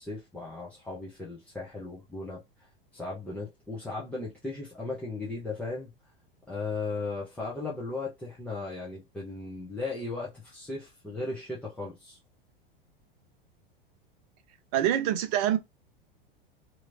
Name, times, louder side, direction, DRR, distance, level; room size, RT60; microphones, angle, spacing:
voice 1, 0.0-2.4 2.9-5.9 6.5-12.2, left 3 dB, 5° left, 0.9 m, -36 dB
voice 2, 14.7-15.6, right 11 dB, 40° right, 0.6 m, -25 dB
3.0 x 2.8 x 2.5 m
figure-of-eight pair, 90°, 29 cm